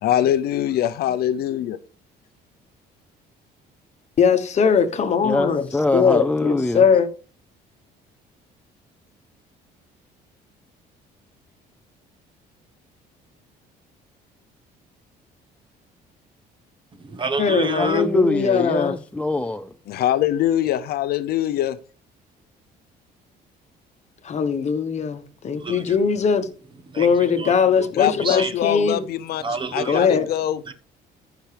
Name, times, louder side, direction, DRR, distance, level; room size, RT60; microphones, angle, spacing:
voice 1, 0.0-1.8 19.9-21.8 28.0-29.4 29.7-30.6, left 11 dB, 70° left, 0.6 m, -23 dB
voice 2, 4.2-5.6 5.9-7.1 17.4-19.0 24.2-26.5 27.0-29.0 29.8-30.3, left 6 dB, 40° left, 1.1 m, -20 dB
voice 3, 5.2-6.8 17.8-19.7, left 2 dB, 10° left, 0.4 m, -23 dB
voice 4, 16.9-18.1 25.6-26.0 26.9-28.5 29.4-30.1 30.7-30.8, right 4 dB, 30° right, 1.1 m, -30 dB
14.5 x 6.0 x 3.4 m
cardioid pair, 110°, 17 cm